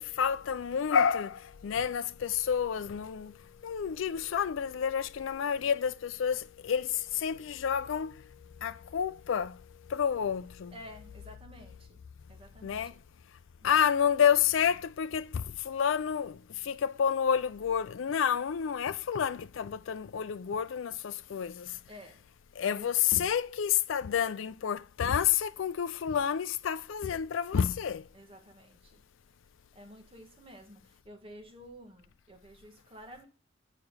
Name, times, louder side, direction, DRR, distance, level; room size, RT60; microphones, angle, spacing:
voice 1, 0.0-3.3 3.6-6.9 7.2-8.1 8.6-9.5 9.9-10.7 12.6-12.9 13.6-16.3 16.7-21.7 22.6-28.0, left 8 dB, 75° left, 0.4 m, -29 dB
voice 2, 10.7-12.0 12.3-13.0 21.9-22.2 22.7-22.8 28.1-29.0 29.7-33.3, equal, 30° right, 1.6 m, -51 dB
6.8 x 5.8 x 5.4 m
head